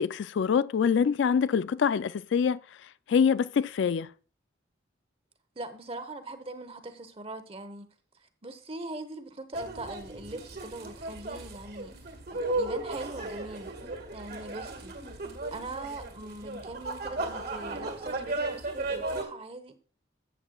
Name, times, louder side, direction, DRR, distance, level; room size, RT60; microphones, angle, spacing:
voice 1, 0.0-2.6 3.1-4.1, left 6 dB, 70° left, 0.3 m, -25 dB
voice 2, 5.6-7.9 8.4-12.0 12.3-13.8 14.1-14.9 15.5-19.8, right 2 dB, 30° right, 1.0 m, -41 dB
sound 1, 9.5-19.2, right 2 dB, 55° right, 1.8 m, -35 dB
14.0 x 8.0 x 2.3 m
head